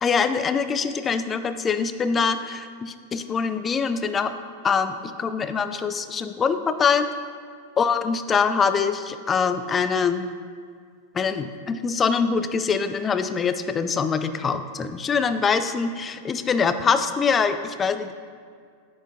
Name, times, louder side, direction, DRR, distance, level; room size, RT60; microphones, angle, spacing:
voice 1, 0.0-4.3 4.6-7.1 7.8-10.3 11.1-18.1, left 5 dB, 20° left, 10 dB, 0.4 m, -24 dB
8.8 x 6.5 x 2.7 m, 2.1 s
figure-of-eight pair, 90°, 0 cm